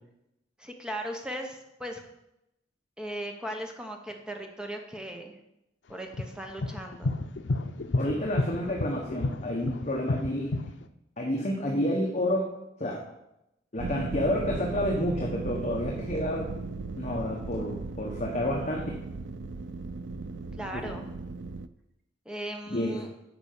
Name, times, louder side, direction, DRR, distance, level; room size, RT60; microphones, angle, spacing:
voice 1, 0.6-2.0 3.0-5.4 5.9-7.1 20.6-21.1 22.2-23.1, equal, 5° right, 3 dB, 1.1 m, -38 dB
sound 1, 6.1-10.8, left 2 dB, 85° left, 0.6 m, -30 dB
voice 2, 8.0-10.5 11.2-12.5 12.8-13.0 13.7-16.5 16.9-18.9 20.7-20.8 22.7-23.0, left 1 dB, 40° left, -1 dB, 1.3 m, -29 dB
sound 2, 13.8-21.7, right 3 dB, 80° right, 0.5 m, -37 dB
9.9 x 5.0 x 6.7 m, 0.85 s
head